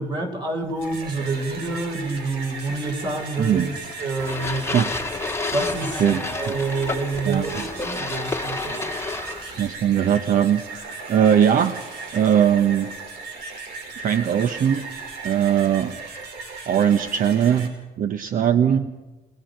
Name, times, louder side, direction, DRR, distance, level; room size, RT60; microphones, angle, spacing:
voice 1, 0.0-3.7 4.0-4.7 5.5-6.0 6.3-8.9, right 3 dB, 25° right, 4 dB, 4.4 m, -27 dB
sound 1, 0.6-17.7, right 3 dB, 80° right, 5.4 m, -37 dB
voice 2, 3.4-3.7 4.7-4.9 6.0-6.5 7.3-7.6 9.6-11.8 12.1-12.9 14.0-14.8 15.2-16.0 16.7-17.7 18.0-18.9, right 9 dB, 55° right, 9 dB, 1.1 m, -20 dB
sound 2, 4.2-9.7, left 3 dB, 15° left, 1.5 m, -30 dB
30.0 x 20.5 x 5.3 m, 1.1 s
cardioid pair, 110°, 17 cm